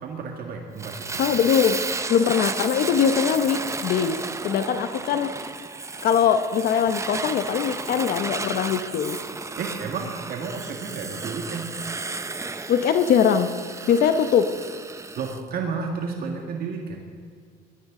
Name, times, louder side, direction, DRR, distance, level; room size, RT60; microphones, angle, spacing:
voice 1, 0.0-1.2 9.6-11.7 15.1-17.0, right 5 dB, 60° right, 2 dB, 1.8 m, -32 dB
Fire, 0.8-15.4, right 3 dB, 15° right, 0.7 m, -33 dB
voice 2, 1.2-1.8 2.1-5.3 6.0-9.2 12.7-13.5 13.9-14.5, left 8 dB, 60° left, 9 dB, 0.9 m, -21 dB
20.5 x 13.5 x 3.8 m, 2.1 s
cardioid pair, 110°, 17 cm